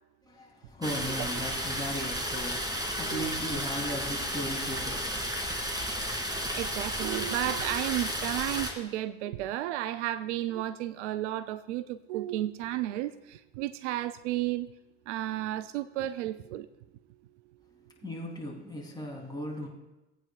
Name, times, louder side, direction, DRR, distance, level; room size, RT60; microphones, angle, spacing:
voice 1, 0.2-5.1 18.0-19.7, equal, 10° left, -3 dB, 3.4 m, -37 dB
sound 1, 0.8-8.7, equal, 10° right, 2.4 m, -33 dB
voice 2, 6.5-14.7 15.1-16.7, right 14 dB, 75° right, 15 dB, 0.5 m, -33 dB
19.0 x 8.9 x 2.5 m, 0.99 s
hypercardioid pair, 65°, 35 cm